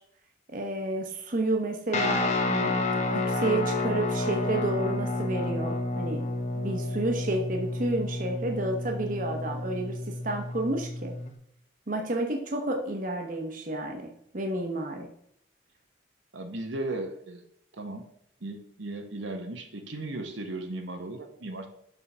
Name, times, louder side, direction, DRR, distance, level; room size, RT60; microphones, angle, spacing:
voice 1, 0.5-2.8 3.1-6.2 6.6-11.1 11.9-15.1, right 2 dB, 45° right, 3 dB, 0.9 m, -30 dB
Guitar, 1.9-11.3, left 2 dB, 35° left, 0.8 m, -30 dB
voice 2, 16.3-17.4 17.8-18.1 18.4-21.7, right 2 dB, 75° right, 4 dB, 0.9 m, -36 dB
6.9 x 3.7 x 5.4 m, 0.73 s
head